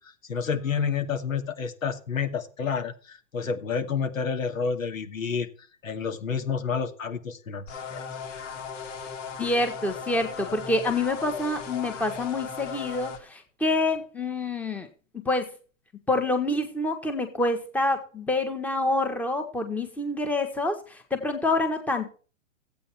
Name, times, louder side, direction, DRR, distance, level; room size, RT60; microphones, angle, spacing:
voice 1, 0.3-5.5 5.8-8.0, left 6 dB, 90° left, 7 dB, 2.4 m, -29 dB
sound 1, 7.7-13.2, left 6 dB, 65° left, 2.6 m, -37 dB
voice 2, 9.4-14.9 15.1-15.5 16.1-22.1, left 2 dB, 5° left, 6 dB, 1.4 m, -27 dB
14.5 x 8.6 x 4.6 m, 0.38 s
hypercardioid pair, 150°, 39 cm